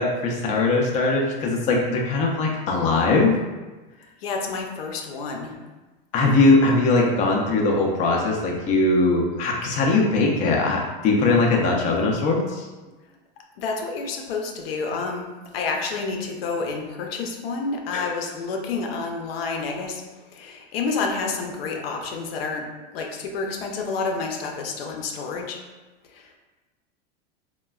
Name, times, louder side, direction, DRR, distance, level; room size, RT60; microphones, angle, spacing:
voice 1, 0.0-3.4 6.1-12.7 17.9-18.1, left 3 dB, 25° left, -1 dB, 0.4 m, -20 dB
voice 2, 4.2-5.6 13.6-25.6 26.1-26.4, left 4 dB, 80° left, 2 dB, 0.5 m, -29 dB
3.1 x 2.2 x 2.3 m, 1.2 s
supercardioid pair, 130°, 29 cm